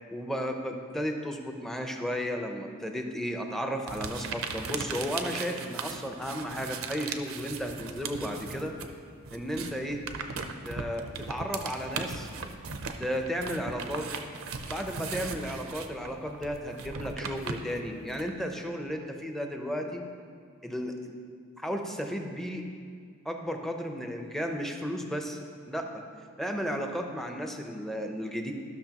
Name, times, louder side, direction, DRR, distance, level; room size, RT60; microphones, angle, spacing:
voice 1, 0.1-8.7 9.3-10.0 10.6-12.3 13.0-14.1 14.7-20.0 20.6-20.9 21.6-22.6 23.2-25.4 25.7-25.9 26.4-28.5, equal, ahead, 3 dB, 0.6 m, -34 dB
sound 1, 3.9-9.0 9.2-18.3, right 5 dB, 70° right, 0.6 m, -38 dB
14.0 x 6.2 x 3.0 m, 2.1 s
head